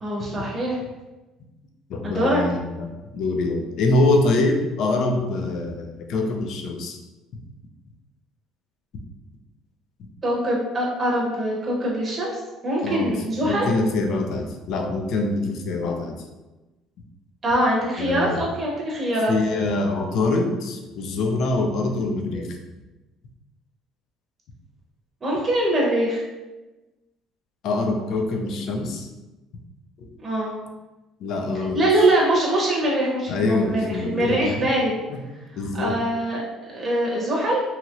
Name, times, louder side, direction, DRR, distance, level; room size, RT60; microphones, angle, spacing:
voice 1, 0.0-0.8 2.0-2.4 10.2-13.7 17.4-19.3 25.2-26.2 30.2-30.5 31.7-34.9 35.7-36.4 36.7-37.6, right 1 dB, 20° right, -5 dB, 0.7 m, -23 dB
voice 2, 1.9-2.9 3.1-7.0 12.8-13.1 13.4-16.2 18.0-18.5 19.3-22.5 27.6-29.1 30.0-30.1 31.2-31.8 33.3-34.4 35.1-35.2 35.5-36.0, left 2 dB, 60° left, 3 dB, 0.4 m, -24 dB
2.9 x 2.8 x 2.4 m, 1.1 s
cardioid pair, 155°, 0 cm